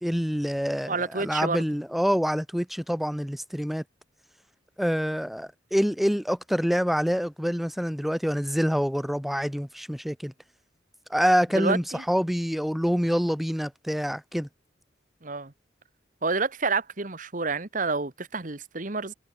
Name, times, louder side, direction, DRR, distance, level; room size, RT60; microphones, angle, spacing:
voice 1, 0.0-3.8 4.8-10.3 11.1-14.5, equal, ahead, 1.6 m, -26 dB
voice 2, 0.9-1.6 11.5-12.0 15.2-15.5 16.2-19.1, right 4 dB, 45° right, 1.4 m, -29 dB
head